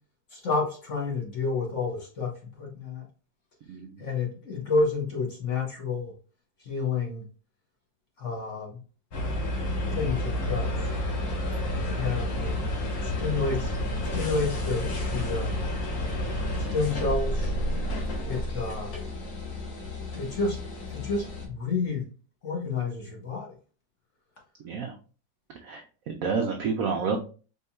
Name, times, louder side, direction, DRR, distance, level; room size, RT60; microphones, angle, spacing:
voice 1, 0.3-3.1 4.0-6.1 6.6-7.2 8.2-8.8 9.9-10.9 11.9-12.5 13.0-13.8 14.1-15.6 16.6-17.5 18.2-18.9 20.1-22.1 22.4-23.5, left 4 dB, 50° left, 1.1 m, -30 dB
sound 1, 9.1-21.5, left 1 dB, 70° left, 1.9 m, -30 dB
voice 2, 24.6-24.9 25.6-27.2, right 5 dB, 90° right, 0.7 m, -29 dB
4.6 x 3.6 x 2.2 m
omnidirectional pair, 2.1 m